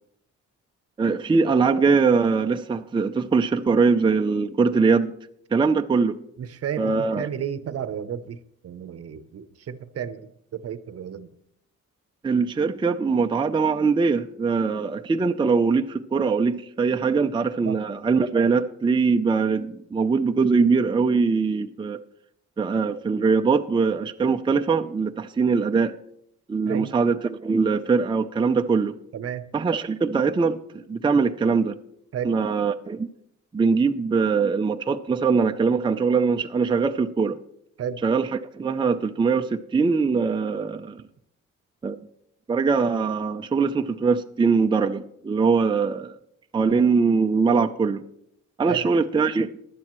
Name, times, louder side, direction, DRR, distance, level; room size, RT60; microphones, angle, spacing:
voice 1, 1.0-5.1 5.5-6.2 6.8-7.3 12.2-22.0 22.6-25.9 26.5-28.9 29.5-31.8 32.2-33.1 33.5-37.4 38.0-41.0 41.8-42.0 42.5-46.1 46.5-48.0 48.6-49.5, right 4 dB, 15° right, 0.5 m, -22 dB
voice 2, 6.4-11.3 17.6-17.8 26.7-26.9 29.1-29.4 32.1-32.3 37.8-38.0 48.7-48.9, right 8 dB, 55° right, 0.8 m, -33 dB
16.0 x 11.0 x 3.1 m
cardioid pair, 90°, 30 cm